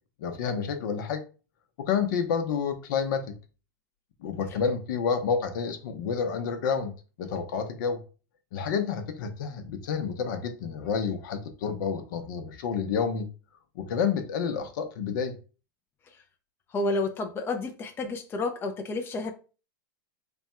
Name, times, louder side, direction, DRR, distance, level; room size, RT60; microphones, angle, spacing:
voice 1, 0.2-1.2 1.8-3.4 4.2-6.9 7.2-8.0 8.5-13.3 13.7-15.4, left 6 dB, 65° left, 0.8 m, -29 dB
voice 2, 16.7-19.3, left 2 dB, 20° left, 0.5 m, -30 dB
3.4 x 2.3 x 4.3 m
hypercardioid pair, 120°, 11 cm